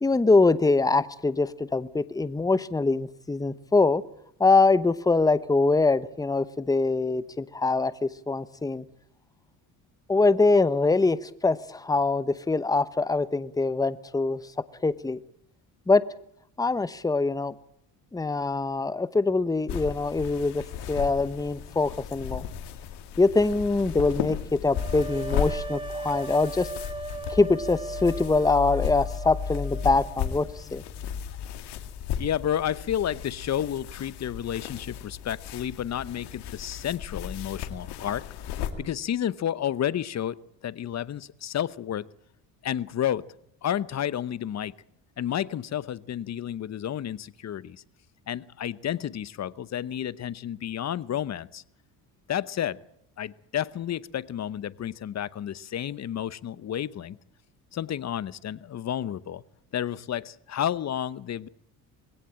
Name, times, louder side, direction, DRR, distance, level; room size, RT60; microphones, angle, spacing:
voice 1, 0.0-4.0 4.4-8.8 10.1-14.4 14.8-15.2 15.9-16.0 16.6-17.5 18.1-22.4 23.2-26.7 27.3-30.8, left 3 dB, 10° left, 15 dB, 0.9 m, -23 dB
sound 1, 19.7-38.7, left 8 dB, 75° left, 2.4 m, -35 dB
sound 2, 24.7-30.6, right 3 dB, 15° right, 2.1 m, -38 dB
voice 2, 32.2-38.2 38.8-42.1 42.6-43.2 43.6-44.7 45.2-47.8 48.3-51.6 52.3-52.8 53.2-57.2 57.7-59.4 59.7-61.5, left 10 dB, 40° left, 18 dB, 0.9 m, -31 dB
21.0 x 17.0 x 8.7 m, 0.71 s
supercardioid pair, 90°, 40 cm